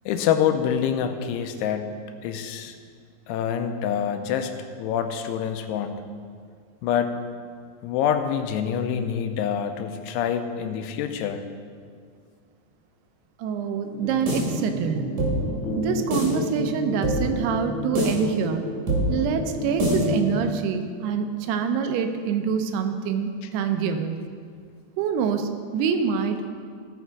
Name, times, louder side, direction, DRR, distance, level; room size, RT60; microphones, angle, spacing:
voice 1, 0.1-1.9 2.2-2.8 3.3-4.5 4.8-6.0 6.8-7.1 7.8-11.4, left 8 dB, 85° left, 7 dB, 2.8 m, -26 dB
voice 2, 13.4-15.1 15.7-18.7 19.1-24.3 25.0-26.5, right 6 dB, 80° right, 7 dB, 2.7 m, -26 dB
sound 1, 13.9-20.5, equal, 55° right, 3.6 m, -26 dB
16.5 x 6.0 x 4.6 m, 2.1 s
omnidirectional pair, 4.7 m